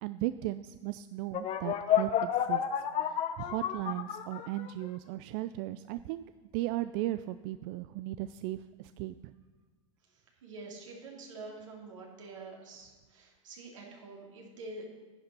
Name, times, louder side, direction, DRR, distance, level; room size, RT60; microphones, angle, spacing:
voice 1, 0.0-2.6 3.0-6.2 6.5-9.3, right 15 dB, 55° right, 12 dB, 0.4 m, -36 dB
sound 1, 1.3-4.9, left 9 dB, 40° left, 0.8 m, -30 dB
voice 2, 10.1-14.9, right 3 dB, 80° right, -2 dB, 3.1 m, -47 dB
10.5 x 8.7 x 5.5 m, 1.3 s
hypercardioid pair, 95°, 16 cm